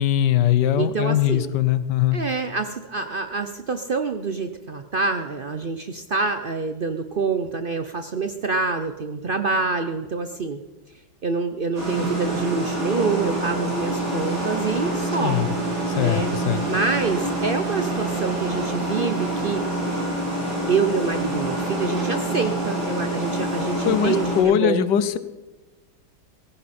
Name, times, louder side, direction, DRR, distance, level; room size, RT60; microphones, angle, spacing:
voice 1, 0.0-2.2 15.2-15.5 16.0-16.6 23.8-25.2, left 11 dB, 80° left, 14 dB, 1.4 m, -21 dB
voice 2, 0.8-1.5 2.1-10.6 11.2-15.4 16.0-16.3 16.7-19.7 20.7-24.9, right 4 dB, 60° right, 8 dB, 0.5 m, -26 dB
sound 1, 11.7-24.4, right 1 dB, 85° right, 7.3 m, -26 dB
17.0 x 15.0 x 4.3 m, 1.1 s
omnidirectional pair, 1.8 m